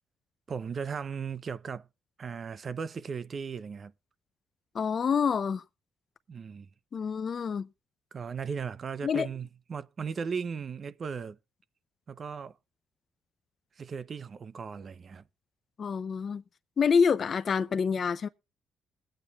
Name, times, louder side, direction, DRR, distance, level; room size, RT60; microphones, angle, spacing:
voice 1, 0.5-1.9 2.2-3.9 6.3-6.7 8.1-11.4 12.1-12.5 13.8-15.2, right 6 dB, 45° right, 0.6 m, -37 dB
voice 2, 4.7-5.6 6.9-7.7 9.0-9.3 15.8-16.4 16.8-18.3, left 6 dB, 50° left, 0.6 m, -27 dB
21.0 x 8.9 x 2.4 m
cardioid pair, 90°, 0 cm